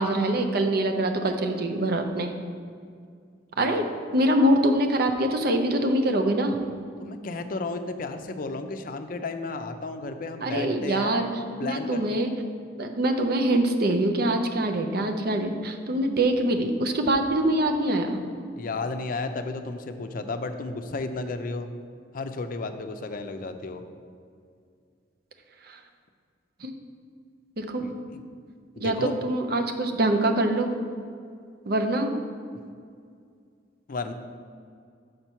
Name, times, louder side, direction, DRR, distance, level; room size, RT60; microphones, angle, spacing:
voice 1, 0.0-2.3 3.6-3.9 4.1-6.6 10.4-11.3 11.6-12.3 12.8-18.2 25.7-25.8 26.6-26.7 27.6-27.8 28.8-30.7 31.7-32.1, right 1 dB, 55° right, 5 dB, 0.6 m, -24 dB
voice 2, 3.6-3.9 7.0-11.2 11.6-12.0 18.6-21.7 22.1-23.8 27.8-28.2 28.8-29.1 33.9-34.1, left 3 dB, 50° left, 7 dB, 0.5 m, -33 dB
6.5 x 4.5 x 5.6 m, 2.2 s
head